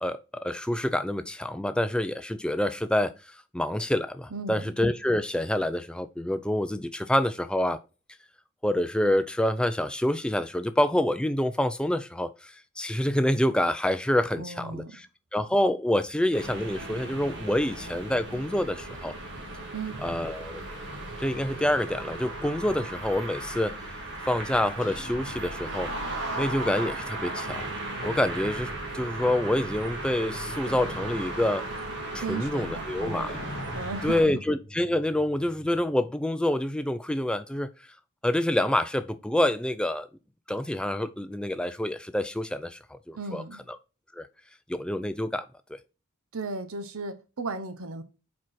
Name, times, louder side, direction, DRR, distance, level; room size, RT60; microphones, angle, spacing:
voice 1, 0.0-7.8 8.6-15.1 15.3-19.2 20.0-20.6 21.2-23.8 24.2-25.9 26.4-27.7 28.0-31.6 32.1-33.3 34.0-37.7 38.2-40.1 40.5-43.4 44.1-44.3 44.7-45.8, left 1 dB, 5° left, 0.3 m, -27 dB
voice 2, 4.3-4.7 14.4-15.0 19.7-20.0 32.2-33.4 33.7-34.4 43.1-43.6 46.3-48.0, right 3 dB, 75° right, 0.8 m, -36 dB
sound 1, 16.3-34.2, right 2 dB, 50° right, 1.6 m, -36 dB
sound 2, 24.8-26.1 28.0-29.1 30.7-31.7 33.3-36.0, left 1 dB, 40° left, 1.3 m, -43 dB
4.7 x 4.6 x 5.7 m
head